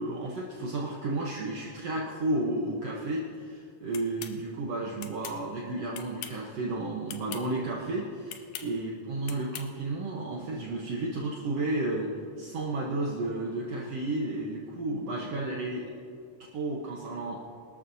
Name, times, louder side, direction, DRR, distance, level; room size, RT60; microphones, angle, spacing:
voice 1, 0.0-15.9 16.5-17.4, right 2 dB, 60° right, -3 dB, 2.0 m, -32 dB
sound 1, 3.9-4.4 5.0-5.4 5.9-6.4 7.1-7.4 8.3-8.7 9.3-9.7, left 10 dB, 80° left, 2.2 m, -41 dB
23.0 x 13.0 x 2.8 m, 2.4 s
omnidirectional pair, 3.5 m